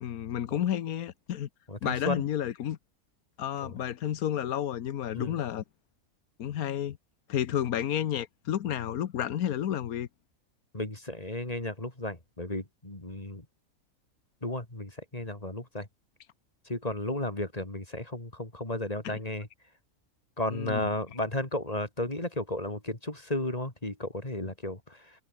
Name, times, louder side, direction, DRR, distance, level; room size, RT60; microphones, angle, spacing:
voice 1, 0.0-1.5 1.8-2.8 3.4-5.6 6.4-7.0 7.3-10.1 19.0-19.2 20.5-20.9, left 10 dB, 85° left, 1.4 m, -31 dB
voice 2, 1.7-2.3 3.6-3.8 5.1-5.4 10.7-13.5 14.4-15.9 16.7-19.5 20.4-25.2, left 1 dB, 25° left, 3.7 m, -34 dB
omnidirectional pair, 1.5 m